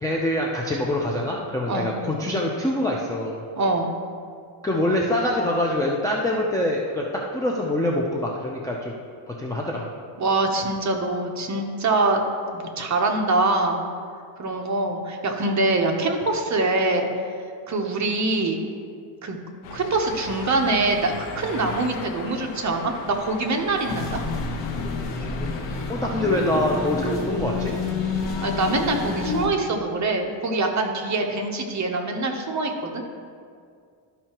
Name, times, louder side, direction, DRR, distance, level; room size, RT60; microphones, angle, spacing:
voice 1, 0.0-3.4 4.6-8.9 9.3-9.9 25.9-27.8, left 1 dB, 5° left, -3 dB, 0.5 m, -25 dB
voice 2, 3.6-3.9 10.2-12.2 12.5-13.8 14.4-17.1 17.7-18.6 19.2-19.4 19.7-24.2 28.4-33.0, right 2 dB, 35° right, 2 dB, 0.8 m, -24 dB
sound 1, 19.6-27.2, left 6 dB, 80° left, 0.8 m, -38 dB
sound 2, 23.9-29.5, left 3 dB, 55° left, 1.4 m, -28 dB
12.5 x 5.6 x 2.9 m, 2.2 s
cardioid pair, 145°, 50 cm